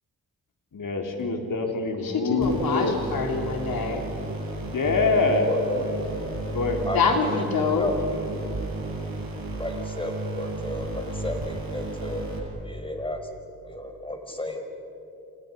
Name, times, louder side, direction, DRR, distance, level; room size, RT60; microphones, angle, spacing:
voice 1, 0.7-3.0 4.7-5.6 6.5-6.8, left 3 dB, 65° left, 2 dB, 3.9 m, -25 dB
voice 2, 2.0-4.0 6.9-7.9, left 5 dB, 85° left, 2 dB, 3.6 m, -26 dB
sound 1, 2.4-12.4, right 2 dB, 70° right, 7.4 m, -33 dB
voice 3, 5.5-6.0 6.8-7.4 7.7-8.0 9.6-12.3 12.6-13.3 13.6-14.7, left 1 dB, 15° left, 4 dB, 4.7 m, -33 dB
29.5 x 28.0 x 5.4 m, 3.0 s
cardioid pair, 70°, 35 cm